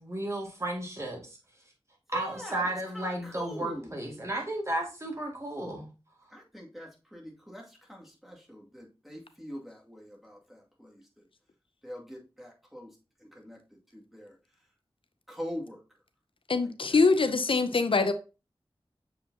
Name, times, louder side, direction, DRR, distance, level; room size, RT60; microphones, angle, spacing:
voice 1, 0.0-1.4 2.1-5.9, right 1 dB, 30° right, 2.2 m, -33 dB
voice 2, 2.1-3.9 6.3-11.2 11.8-12.9 13.2-14.4 15.3-15.8 16.6-17.0, equal, ahead, 2.2 m, -44 dB
voice 3, 16.5-18.1, left 4 dB, 65° left, 0.5 m, -24 dB
7.0 x 4.9 x 2.8 m
wide cardioid pair, 65°, 10 cm